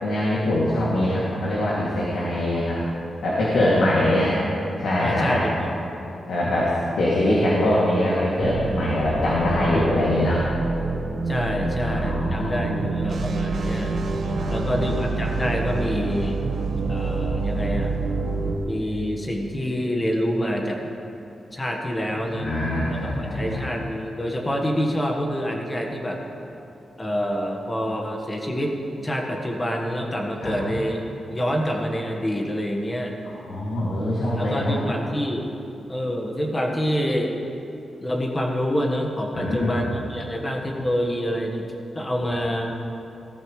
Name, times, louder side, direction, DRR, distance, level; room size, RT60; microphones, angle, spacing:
voice 1, 0.0-2.8 3.2-4.4 4.8-5.4 6.3-10.5 11.5-13.3 14.3-14.9 22.1-23.7 30.4-30.6 33.3-34.9 39.3-39.9, left 1 dB, 90° left, -7 dB, 2.5 m, -23 dB
voice 2, 3.7-4.2 5.0-6.2 9.6-9.9 10.2-10.3 11.2-14.0 14.5-16.4 16.9-17.9 18.6-20.8 21.5-22.5 22.9-26.2 27.0-28.7 29.0-31.0 31.3-33.1 34.4-35.4 35.9-37.4 38.0-41.7 41.9-42.7, equal, 15° left, 1 dB, 1.4 m, -27 dB
sound 1, 8.4-18.6, right 3 dB, 60° right, 1.2 m, -27 dB
18.0 x 13.0 x 3.2 m, 2.8 s
wide cardioid pair, 155°, 0 cm